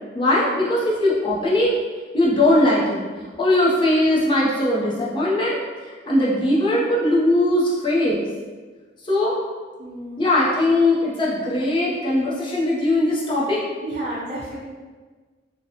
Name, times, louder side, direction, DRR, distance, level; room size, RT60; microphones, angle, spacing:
voice 1, 0.1-1.7 2.1-3.0 3.4-5.6 5.9-8.2 9.0-9.4 10.2-13.6, left 1 dB, 25° left, -6 dB, 0.5 m, -20 dB
voice 2, 9.8-10.3 13.8-14.6, right 1 dB, 40° right, -8 dB, 0.5 m, -31 dB
2.6 x 2.1 x 2.7 m, 1.4 s
head